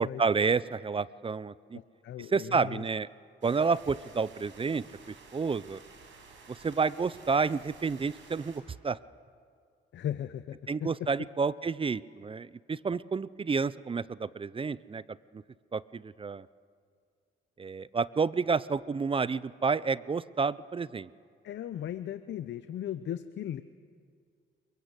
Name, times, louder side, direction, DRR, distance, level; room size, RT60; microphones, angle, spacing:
voice 1, 0.0-1.8 2.3-3.1 3.4-5.8 6.5-9.0 10.7-15.4 15.7-16.5 17.6-21.1, right 5 dB, 25° right, 19 dB, 0.6 m, -30 dB
voice 2, 1.7-2.8 9.9-11.3 21.4-23.6, left 10 dB, 65° left, 12 dB, 0.9 m, -37 dB
sound 1, 3.4-8.6, right 4 dB, 75° right, 6.2 m, -53 dB
28.5 x 23.0 x 8.2 m, 2.2 s
cardioid pair, 90°, 20 cm